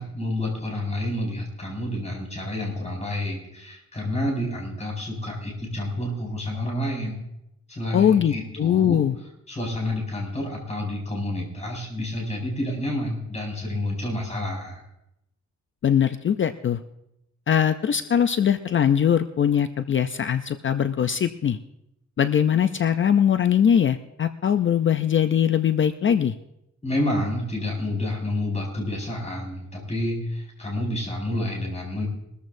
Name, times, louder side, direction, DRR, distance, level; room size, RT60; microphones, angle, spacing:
voice 1, 0.0-7.2 7.7-9.0 9.5-14.8 26.8-32.0, left 1 dB, 25° left, -2 dB, 4.9 m, -29 dB
voice 2, 7.9-9.2 15.8-16.8 17.5-21.6 22.2-26.3, left 8 dB, 45° left, 10 dB, 0.4 m, -21 dB
22.0 x 14.0 x 2.6 m, 0.84 s
wide cardioid pair, 155°, 29 cm